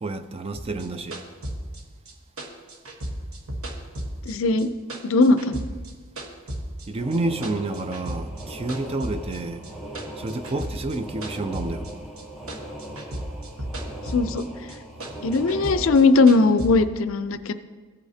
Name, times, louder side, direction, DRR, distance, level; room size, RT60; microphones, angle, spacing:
voice 1, 0.0-1.2 6.9-9.6 10.2-11.9, right 2 dB, 25° right, 0.4 m, -29 dB
sound 1, 0.5-4.6 4.9-6.9 7.1-8.4 8.7-12.2 12.5-14.4 14.7-16.7, right 1 dB, 80° right, 1.3 m, -34 dB
voice 2, 4.3-4.7 5.0-5.6 14.1-14.4 15.2-17.5, left 3 dB, 65° left, 0.5 m, -19 dB
sound 2, 7.0-15.9, right 1 dB, ahead, 1.4 m, -39 dB
15.0 x 8.1 x 2.8 m
head